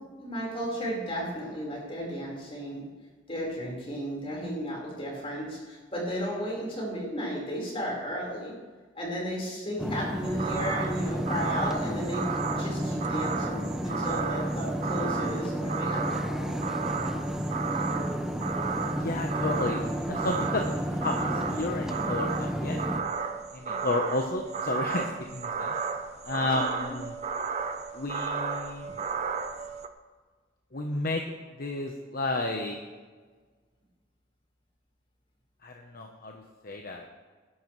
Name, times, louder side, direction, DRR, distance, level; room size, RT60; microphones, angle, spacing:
voice 1, 0.2-2.9 3.3-8.6 8.9-12.3 12.6-16.7 23.7-23.8 26.6-27.0, equal, 30° left, -3 dB, 4.6 m, -34 dB
sound 1, 9.8-23.0, equal, 5° right, 0.8 m, -32 dB
sound 2, 10.2-29.9, right 5 dB, 35° right, 0.8 m, -34 dB
voice 2, 18.9-19.8 20.1-20.6 20.9-22.8 23.5-25.7 26.3-27.1 27.9-28.9 30.7-31.2 31.6-32.8 35.6-37.0, left 2 dB, 50° left, 2 dB, 1.0 m, -32 dB
19.5 x 11.5 x 3.3 m, 1.4 s
head